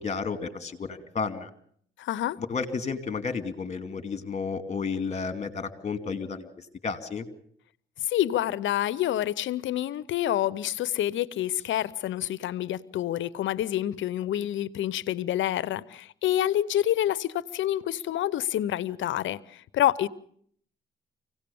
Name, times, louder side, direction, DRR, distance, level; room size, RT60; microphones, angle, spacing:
voice 1, 0.0-1.5 2.4-7.3, left 5 dB, 35° left, 2.4 m, -32 dB
voice 2, 2.0-2.4 8.0-20.1, left 12 dB, 75° left, 0.8 m, -28 dB
26.0 x 17.5 x 7.0 m
cardioid pair, 90°, 20 cm